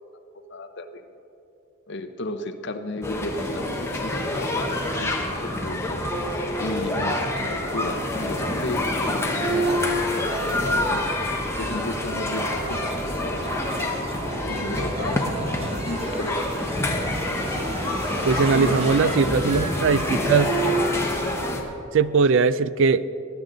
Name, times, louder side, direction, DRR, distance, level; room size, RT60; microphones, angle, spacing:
voice 1, 0.5-1.0 1.9-6.1 6.6-9.8 10.5-11.1 11.6-12.9 13.2-13.4 13.8-14.0 14.5-16.4 17.1-17.6 18.5-19.9, left 2 dB, 55° left, 8 dB, 0.8 m, -34 dB
sound 1, 3.0-21.6, left 1 dB, 10° left, 1.0 m, -27 dB
sound 2, 9.6-21.0, right 1 dB, 25° right, 0.9 m, -34 dB
voice 2, 18.3-20.5 21.9-23.0, right 5 dB, 60° right, 16 dB, 0.4 m, -20 dB
19.0 x 9.9 x 3.9 m, 2.9 s
head